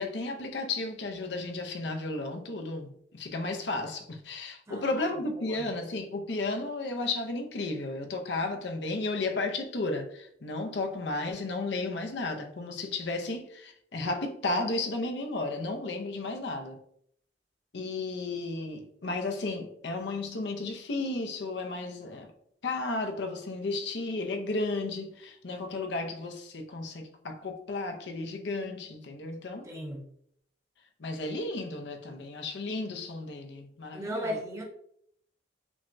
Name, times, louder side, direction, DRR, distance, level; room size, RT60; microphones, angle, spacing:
voice 1, 0.0-16.8 17.7-22.3 22.6-29.7 31.0-34.4, left 2 dB, 70° left, 0.6 m, -33 dB
voice 2, 4.7-5.6 29.6-30.0 33.9-34.6, equal, 15° right, 0.8 m, -37 dB
5.9 x 2.2 x 2.6 m
head